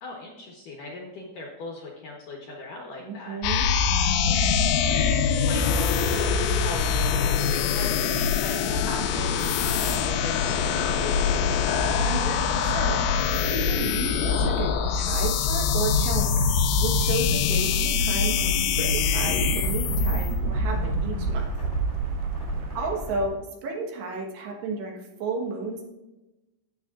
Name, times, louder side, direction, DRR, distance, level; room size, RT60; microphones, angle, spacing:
voice 1, 0.0-3.4 4.2-12.0 22.8-22.9, left 2 dB, 70° left, -1 dB, 2.2 m, -39 dB
voice 2, 3.0-3.7 12.1-16.4 16.8-21.5 22.7-25.9, right 3 dB, 75° right, 0 dB, 3.4 m, -33 dB
sound 1, 3.4-21.3, left 6 dB, 85° left, 3.0 m, -24 dB
sound 2, 4.8-23.3, left 2 dB, 30° left, 1.1 m, -38 dB
sound 3, 15.8-22.8, right 5 dB, 90° right, 2.1 m, -30 dB
13.0 x 8.4 x 2.4 m, 1.0 s
omnidirectional pair, 5.2 m